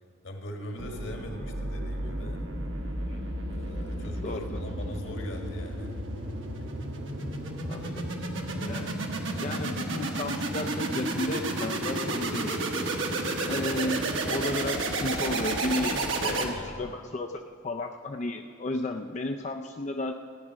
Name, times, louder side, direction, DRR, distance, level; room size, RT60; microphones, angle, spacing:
voice 1, 0.2-2.4 3.5-6.0 7.8-8.2 8.4-9.0 9.4-9.6 15.9-16.9, equal, 65° left, 2 dB, 1.8 m, -42 dB
sound 1, 0.8-16.9, right 2 dB, 65° right, 1.3 m, -32 dB
voice 2, 4.2-4.6 7.2-8.0 8.6-8.9 9.4-12.9 13.4-17.3 17.6-20.1, left 2 dB, 35° left, 3 dB, 0.4 m, -33 dB
16.0 x 9.2 x 6.3 m, 2.2 s
head